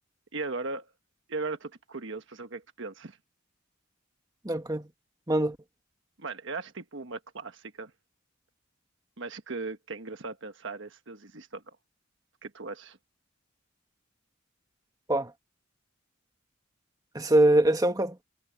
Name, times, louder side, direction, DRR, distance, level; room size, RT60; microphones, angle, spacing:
voice 1, 0.3-0.9 1.3-3.2 6.2-7.9 9.2-11.6 12.4-13.0, right 3 dB, 65° right, 1.3 m, -38 dB
voice 2, 4.4-4.9 5.3-5.6 15.1-15.3 17.1-18.2, right 1 dB, 20° right, 1.9 m, -23 dB
head